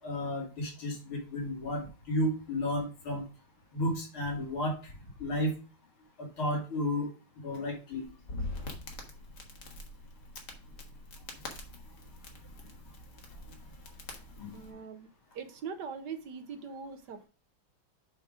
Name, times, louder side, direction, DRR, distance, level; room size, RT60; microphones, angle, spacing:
voice 1, 0.0-3.2 3.7-4.9 5.2-5.5 6.2-7.1 7.4-8.1 14.4-14.6, left 1 dB, 85° left, -1 dB, 3.2 m, -32 dB
Crackle, 8.0-14.7, left 2 dB, 55° left, 1.9 m, -44 dB
voice 2, 14.5-15.1 15.3-17.2, right 6 dB, 65° right, 7 dB, 1.2 m, -41 dB
7.4 x 3.7 x 4.9 m, 0.34 s
omnidirectional pair, 2.2 m